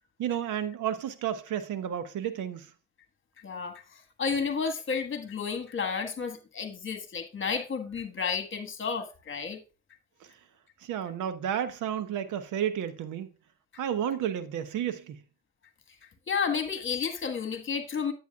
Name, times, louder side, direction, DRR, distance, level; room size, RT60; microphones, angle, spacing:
voice 1, 0.2-2.7 10.8-13.3 13.8-15.2, right 9 dB, 80° right, 0.9 m, -31 dB
voice 2, 3.4-9.6 16.3-18.1, left 5 dB, 40° left, 1.6 m, -32 dB
9.4 x 8.2 x 2.4 m
cardioid pair, 90°, 30 cm